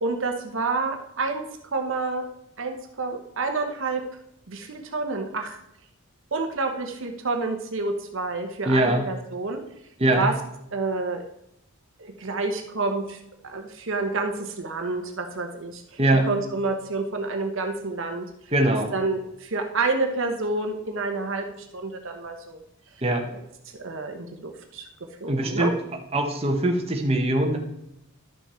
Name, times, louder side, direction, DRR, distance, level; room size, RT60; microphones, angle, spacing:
voice 1, 0.0-2.3 2.6-4.0 4.5-5.6 6.3-9.6 10.2-10.4 10.7-11.2 12.0-16.0 16.3-18.3 18.9-22.6 23.7-24.9 25.2-25.7, right 3 dB, 60° right, 4 dB, 1.0 m, -29 dB
voice 2, 8.7-9.0 10.0-10.3 16.0-16.3 18.5-18.9 23.0-23.3 25.3-25.7 26.1-27.6, right 1 dB, 30° right, 1 dB, 1.0 m, -22 dB
11.5 x 5.9 x 4.3 m, 0.80 s
head